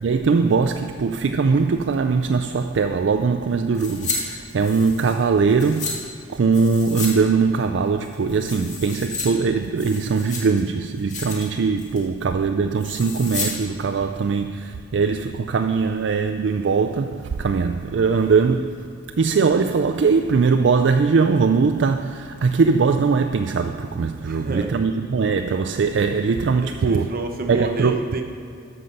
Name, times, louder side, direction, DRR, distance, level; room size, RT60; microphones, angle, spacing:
voice 1, 0.0-6.0 6.3-18.9 19.2-27.1 27.5-28.0, right 5 dB, 65° right, 0.4 m, -21 dB
sound 1, 3.7-4.2 4.5-5.9 6.5-7.1 7.4-7.5 8.0-9.3 9.6-10.6 11.0-11.5 11.8-12.1 12.8-13.5 13.8-13.9, left 4 dB, 40° left, 1.9 m, -32 dB
voice 2, 24.2-24.7 26.6-28.2, right 2 dB, 50° right, 0.9 m, -29 dB
13.5 x 5.5 x 6.6 m
head